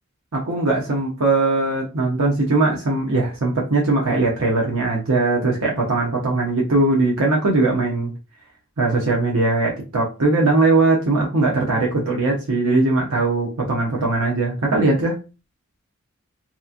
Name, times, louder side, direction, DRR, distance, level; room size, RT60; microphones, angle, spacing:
voice 1, 0.3-8.1 8.8-15.2, right 2 dB, 85° right, -2 dB, 0.8 m, -20 dB
2.9 x 2.4 x 2.4 m, 0.30 s
head